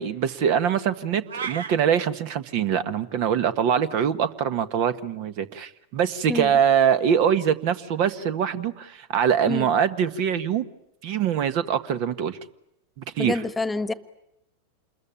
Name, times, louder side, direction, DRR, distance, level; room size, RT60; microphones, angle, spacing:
voice 1, 0.0-10.7 11.0-12.4 13.0-13.4, right 8 dB, 55° right, 12 dB, 1.5 m, -23 dB
sound 1, 1.3-1.8, right 6 dB, 80° right, 1.4 m, -32 dB
voice 2, 13.2-13.9, left 2 dB, 10° left, 12 dB, 1.4 m, -27 dB
28.0 x 21.5 x 8.9 m, 0.82 s
hypercardioid pair, 100°, 0 cm